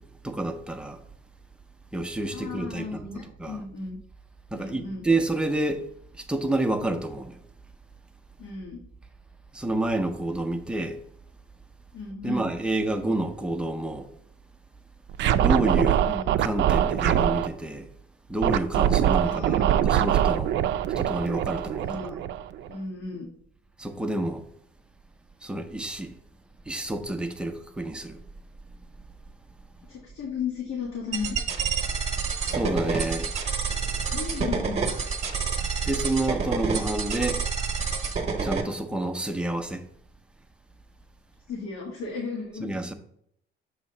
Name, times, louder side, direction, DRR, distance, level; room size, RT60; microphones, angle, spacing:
voice 1, 0.2-1.0 1.9-3.1 3.4-3.6 4.5-5.8 6.2-7.4 9.5-11.0 12.2-14.1 15.4-16.1 16.4-17.9 18.3-20.5 21.0-22.2 23.8-24.4 25.4-26.1 26.7-28.2 32.5-33.3 35.8-37.4 38.4-39.8 42.6-42.9, right 2 dB, 5° right, 0.5 m, -29 dB
voice 2, 2.3-4.0 4.5-5.1 8.4-8.8 11.9-12.5 16.0-16.3 19.2-19.8 21.8-22.2 22.7-23.3 29.9-31.4 34.1-34.8 35.9-36.0 41.5-42.7, left 4 dB, 75° left, 1.6 m, -34 dB
Scratching (performance technique), 15.1-17.5 18.4-22.7, right 10 dB, 60° right, 0.4 m, -23 dB
sound 1, 31.1-38.6, right 5 dB, 30° right, 0.9 m, -28 dB
7.1 x 2.9 x 5.3 m
cardioid pair, 150°, 21 cm